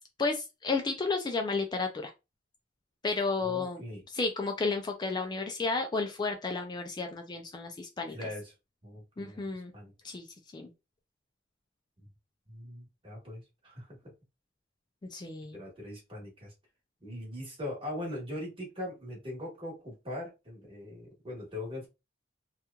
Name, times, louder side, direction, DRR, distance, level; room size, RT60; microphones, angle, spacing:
voice 1, 0.2-2.1 3.0-3.8 4.1-8.2 9.2-9.7 10.0-10.3 10.5-10.7 15.1-15.6, left 3 dB, 20° left, 0.3 m, -32 dB
voice 2, 3.4-4.0 8.1-8.5 8.8-9.9 12.0-12.1 12.5-14.1 15.5-16.5 17.0-21.9, left 1 dB, 30° right, 1.2 m, -41 dB
2.9 x 2.3 x 2.2 m
head